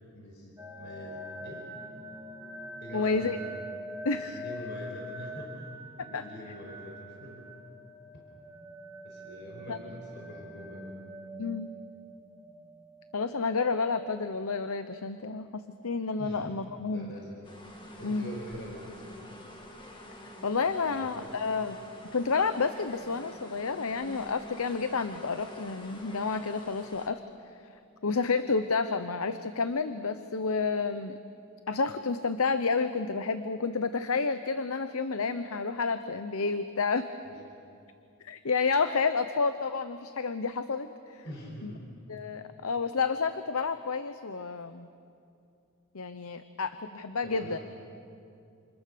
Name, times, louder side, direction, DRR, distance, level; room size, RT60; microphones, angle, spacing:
voice 1, 0.1-1.7 2.8-3.3 4.2-5.7 5.9-7.4 9.0-10.9 16.2-16.4 16.9-17.3 18.0-19.0 20.8-21.3 37.2-37.3 41.2-41.8 47.2-47.6, equal, 55° left, -1 dB, 5.2 m, -44 dB
sound 1, 0.6-14.3, equal, 15° right, 2.1 m, -44 dB
voice 2, 2.9-3.4 4.0-4.4 6.1-6.2 9.7-9.8 11.4-11.7 13.1-17.1 18.0-18.3 20.4-21.8 22.1-27.2 28.0-31.2 31.7-37.1 38.2-41.2 41.6-41.7 42.1-44.9 45.9-47.6, left 4 dB, 80° left, 10 dB, 0.8 m, -30 dB
sound 2, 17.4-27.1, left 1 dB, 25° left, 2.2 m, -47 dB
28.5 x 28.0 x 6.8 m, 2.5 s
head